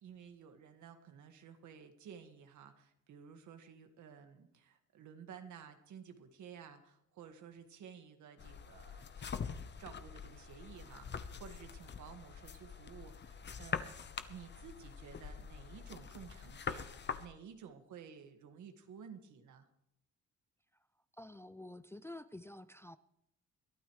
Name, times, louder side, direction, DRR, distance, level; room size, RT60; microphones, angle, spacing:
voice 1, 0.0-13.9 14.3-19.7, right 7 dB, 75° right, 6 dB, 1.8 m, -54 dB
sound 1, 8.4-17.3, left 6 dB, 35° left, 0.9 m, -44 dB
voice 2, 21.2-23.0, left 1 dB, 10° left, 13 dB, 0.4 m, -49 dB
22.0 x 12.0 x 3.2 m, 0.79 s
cardioid pair, 90°, 30 cm